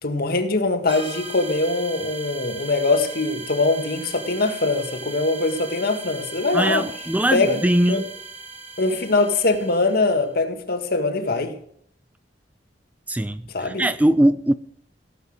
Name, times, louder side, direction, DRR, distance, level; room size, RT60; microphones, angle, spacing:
voice 1, 0.0-6.8 7.3-7.6 7.9-8.0 8.8-11.5 13.5-13.8, left 3 dB, 55° left, 1.8 m, -22 dB
sound 1, 0.9-10.3, right 4 dB, 30° right, 3.0 m, -38 dB
voice 2, 6.5-8.1 13.1-14.5, right 1 dB, 10° right, 0.5 m, -21 dB
16.5 x 8.1 x 6.4 m
head